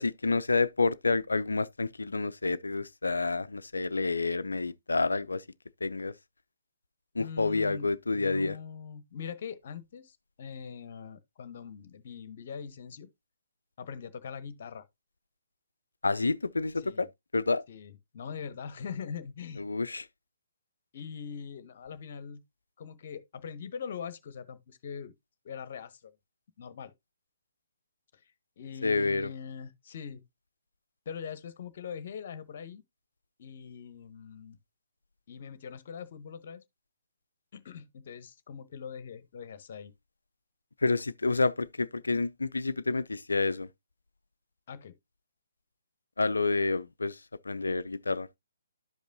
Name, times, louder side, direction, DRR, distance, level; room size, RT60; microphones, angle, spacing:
voice 1, 0.0-5.4 5.8-6.1 7.1-8.6 16.0-17.1 17.3-17.6 19.6-20.0 28.8-29.3 40.8-43.7 46.2-48.3, left 3 dB, 70° left, 0.5 m, -29 dB
voice 2, 7.2-13.1 13.8-14.8 16.8-17.1 17.7-19.6 20.9-22.4 22.8-25.1 25.4-26.1 26.6-26.9 28.1-28.2 28.6-30.2 31.0-32.8 33.4-34.6 35.3-36.6 37.5-39.9 44.7-45.0, left 6 dB, 45° left, 1.0 m, -42 dB
12.0 x 5.2 x 2.7 m
figure-of-eight pair, 135°, 0 cm